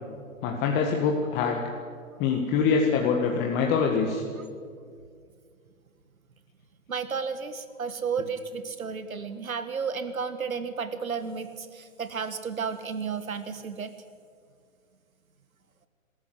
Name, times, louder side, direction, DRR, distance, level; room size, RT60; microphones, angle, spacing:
voice 1, 0.4-1.6 2.2-4.2, left 5 dB, 25° left, 1 dB, 1.7 m, -24 dB
voice 2, 6.9-13.9, right 6 dB, 90° right, 11 dB, 1.5 m, -32 dB
24.0 x 14.0 x 8.1 m, 2.2 s
hypercardioid pair, 135°, 41 cm